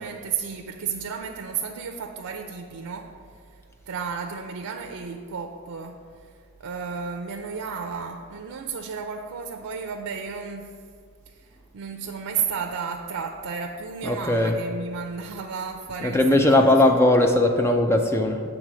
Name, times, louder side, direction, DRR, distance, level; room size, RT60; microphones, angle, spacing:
voice 1, 0.0-3.1 3.9-6.0 6.6-10.7 11.3-11.5 11.7-17.0, right 6 dB, 85° right, 4 dB, 0.5 m, -33 dB
voice 2, 14.0-14.5 16.0-18.4, left 1 dB, 10° left, 4 dB, 0.3 m, -19 dB
7.9 x 3.6 x 6.1 m, 2.2 s
head